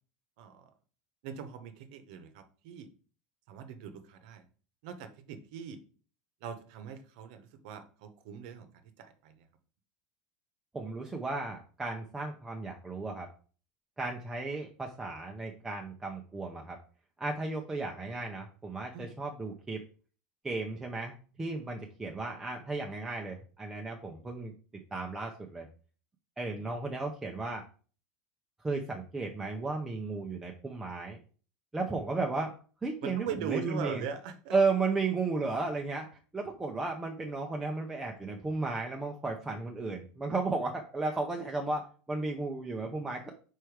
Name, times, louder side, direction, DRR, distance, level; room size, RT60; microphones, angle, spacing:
voice 1, 0.4-0.7 1.2-2.9 3.5-4.4 4.8-5.8 6.4-8.7 9.0-9.5 18.9-19.1 33.0-34.5, right 7 dB, 65° right, 9 dB, 0.9 m, -41 dB
voice 2, 10.7-13.3 14.0-16.8 17.2-19.8 20.4-24.5 24.9-25.7 26.4-27.7 28.6-31.2 31.7-32.6 32.8-34.1 34.5-36.1 36.3-43.3, right 3 dB, 10° right, 1 dB, 0.5 m, -34 dB
5.0 x 4.5 x 4.6 m, 0.41 s
supercardioid pair, 165°, 5 cm